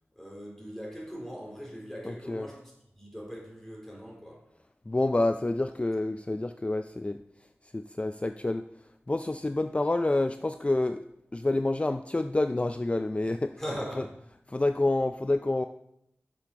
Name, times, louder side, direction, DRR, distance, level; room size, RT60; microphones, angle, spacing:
voice 1, 0.2-4.5 13.6-14.1, equal, 10° left, -3 dB, 3.7 m, -40 dB
voice 2, 2.1-2.5 4.9-7.2 7.7-8.6 9.1-11.0 11.3-13.5 14.5-15.7, left 2 dB, 25° left, 8 dB, 0.4 m, -28 dB
6.5 x 6.0 x 5.8 m, 0.78 s
cardioid pair, 40°, 5 cm